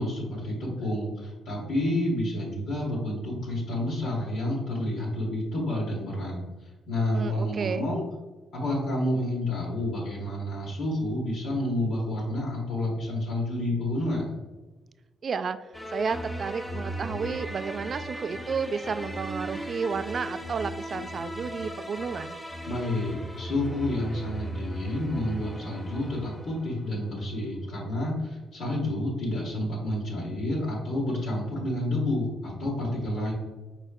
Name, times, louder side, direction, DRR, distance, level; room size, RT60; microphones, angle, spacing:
voice 1, 0.0-6.4 6.9-8.1 8.5-14.3 22.7-33.3, left 1 dB, 70° left, -6 dB, 1.4 m, -29 dB
voice 2, 7.1-7.9 15.2-22.4, right 5 dB, 45° right, 11 dB, 0.3 m, -32 dB
sound 1, 15.7-27.1, equal, 5° left, 0.6 m, -37 dB
5.0 x 4.3 x 2.4 m, 1.2 s
cardioid pair, 90°, 0 cm